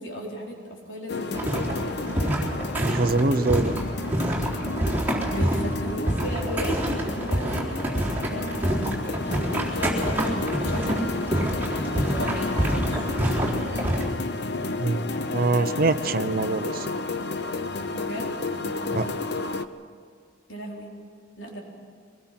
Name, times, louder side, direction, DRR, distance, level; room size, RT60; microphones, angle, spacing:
voice 1, 0.0-2.2 5.3-9.3 9.7-11.4 12.0-13.1 17.9-18.3 18.6-19.2 20.5-20.9 21.4-21.6, equal, 85° left, -1 dB, 4.0 m, -36 dB
sound 1, 1.1-19.7, left 3 dB, 60° left, 0.8 m, -31 dB
sound 2, 1.3-14.1, right 1 dB, 10° right, 3.8 m, -27 dB
voice 2, 2.8-3.8 14.8-16.9 18.9-19.1, right 3 dB, 50° right, 11 dB, 0.8 m, -24 dB
24.0 x 20.0 x 6.0 m, 2.3 s
head